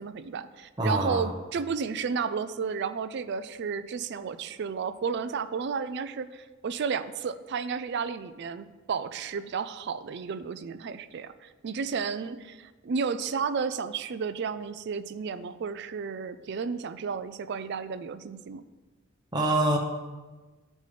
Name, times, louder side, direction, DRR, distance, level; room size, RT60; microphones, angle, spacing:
voice 1, 0.0-18.6, right 5 dB, 55° right, 12 dB, 0.4 m, -32 dB
voice 2, 0.8-1.3 19.3-19.8, right 1 dB, 20° right, 0 dB, 0.8 m, -25 dB
14.0 x 5.3 x 3.3 m, 1.3 s
head